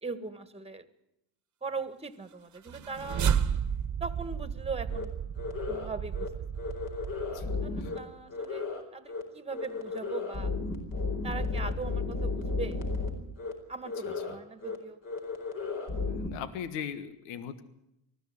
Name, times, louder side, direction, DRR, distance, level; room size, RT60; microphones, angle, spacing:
voice 1, 0.0-0.9 1.6-3.4 4.0-5.1 5.7-6.3 7.6-10.5 11.2-12.8 13.7-15.0, right 4 dB, 15° right, 13 dB, 1.8 m, -39 dB
sound 1, 2.6-7.9, right 8 dB, 40° right, 1.4 m, -33 dB
sound 2, 4.9-5.0 5.4-5.9 6.1-6.3 6.6-8.0 8.3-8.8 9.1-9.2 9.5-13.1 13.4-13.5 13.8-14.4 14.6-14.8 15.0-16.3, left 3 dB, 45° left, 4.3 m, -33 dB
voice 2, 7.3-7.9 14.1-14.4 16.1-17.6, left 8 dB, 85° left, 13 dB, 1.6 m, -40 dB
19.5 x 14.0 x 9.6 m, 0.85 s
supercardioid pair, 90°, 45 cm